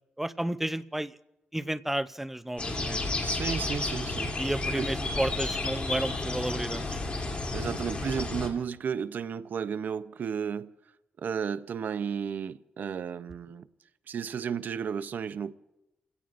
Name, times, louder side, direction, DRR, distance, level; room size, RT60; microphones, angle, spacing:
voice 1, 0.2-1.2 1.5-3.2 4.4-7.0, right 1 dB, 5° right, 0.5 m, -32 dB
sound 1, 2.6-8.5, left 2 dB, 35° left, 2.8 m, -32 dB
voice 2, 3.2-4.3 4.7-4.9 7.5-10.7 11.2-13.7 14.1-15.5, right 7 dB, 65° right, 0.6 m, -33 dB
29.0 x 16.5 x 2.5 m
wide cardioid pair, 115°, 3 cm